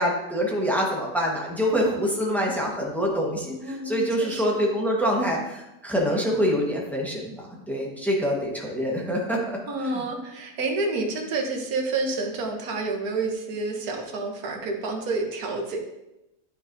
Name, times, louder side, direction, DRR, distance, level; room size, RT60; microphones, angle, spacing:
voice 1, 0.0-10.0, equal, ahead, -3 dB, 1.2 m, -26 dB
voice 2, 3.4-4.6 9.7-15.8, right 3 dB, 80° right, 2 dB, 1.5 m, -29 dB
9.5 x 6.4 x 2.7 m, 0.92 s
omnidirectional pair, 1.6 m